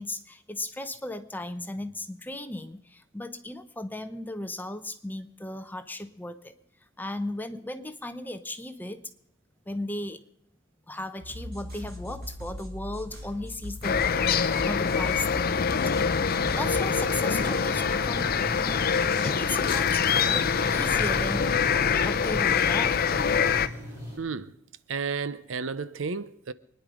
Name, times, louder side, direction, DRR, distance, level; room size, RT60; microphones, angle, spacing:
voice 1, 0.0-6.5 7.0-9.1 9.7-10.2 10.9-15.8 16.5-21.6 22.0-23.0, left 1 dB, 10° left, 0.9 m, -36 dB
sound 1, 11.2-16.8, left 1 dB, 50° right, 5.6 m, -39 dB
sound 2, 13.8-23.7, left 6 dB, 50° left, 0.6 m, -25 dB
sound 3, 16.5-24.2, equal, 15° right, 7.1 m, -39 dB
voice 2, 24.2-24.5 24.9-26.5, right 5 dB, 80° right, 0.7 m, -32 dB
24.0 x 10.5 x 5.1 m
head